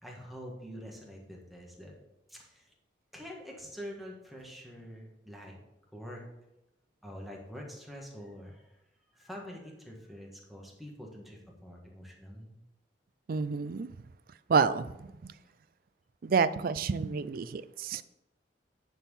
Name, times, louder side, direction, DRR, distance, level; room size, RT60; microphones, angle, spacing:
voice 1, 0.0-1.9 2.3-2.6 3.1-5.6 5.9-6.2 7.0-8.6 9.1-12.5, equal, ahead, -2 dB, 1.6 m, -45 dB
voice 2, 13.3-13.9 14.5-14.9 15.2-15.3 16.2-18.0, right 5 dB, 55° right, 15 dB, 0.4 m, -28 dB
10.5 x 4.5 x 5.5 m, 0.90 s
head